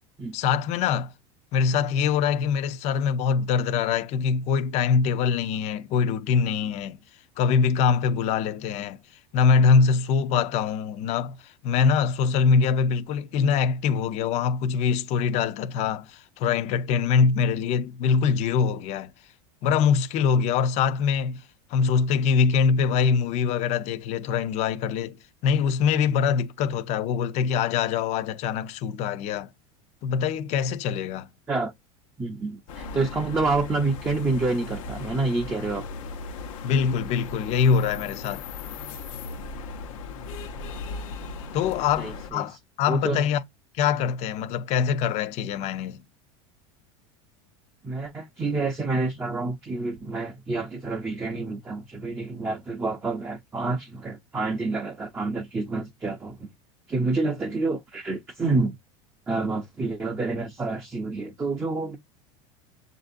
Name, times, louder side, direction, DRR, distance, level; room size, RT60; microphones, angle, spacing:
voice 1, 0.3-1.1 1.5-7.0 7.4-9.0 9.3-19.1 19.6-21.4 21.7-25.2 25.4-29.5 30.0-31.3 36.6-38.4 41.5-43.4 43.8-46.0, left 6 dB, 40° left, 0.6 m, -23 dB
voice 2, 32.2-35.9 42.0-42.4 42.9-43.2 47.8-56.5 56.9-58.8 59.3-62.0, right 3 dB, 15° right, 0.6 m, -28 dB
sound 1, 32.7-42.3, left 4 dB, 85° left, 1.0 m, -37 dB
7.0 x 2.6 x 2.5 m
supercardioid pair, 145°, 17 cm